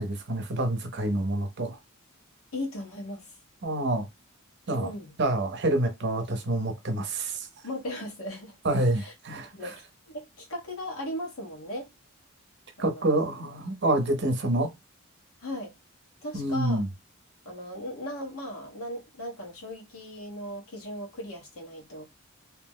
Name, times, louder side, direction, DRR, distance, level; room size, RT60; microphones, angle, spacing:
voice 1, 0.0-1.8 3.6-4.1 4.7-4.9 5.2-7.5 8.6-9.7 12.8-14.7 16.3-16.9, right 1 dB, 55° right, 0.7 m, -27 dB
voice 2, 2.5-3.3 4.7-5.1 7.6-8.6 9.0-9.1 9.5-11.9 12.8-13.2 15.4-15.7 16.2-16.8 17.4-22.0, left 1 dB, 80° left, 1.2 m, -37 dB
2.8 x 2.1 x 3.5 m
head